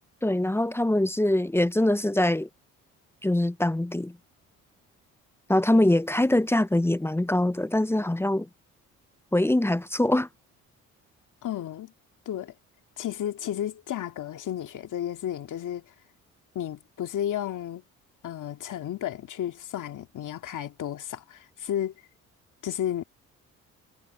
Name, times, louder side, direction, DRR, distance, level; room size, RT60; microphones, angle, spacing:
voice 1, 0.2-2.5 3.2-4.2 5.5-8.5 9.3-10.3, left 1 dB, 5° left, 0.6 m, -23 dB
voice 2, 11.4-11.9 12.3-12.5 13.0-15.9 16.5-17.8 18.2-21.9 22.6-23.0, left 11 dB, 65° left, 2.4 m, -32 dB
supercardioid pair, 65°, 33 cm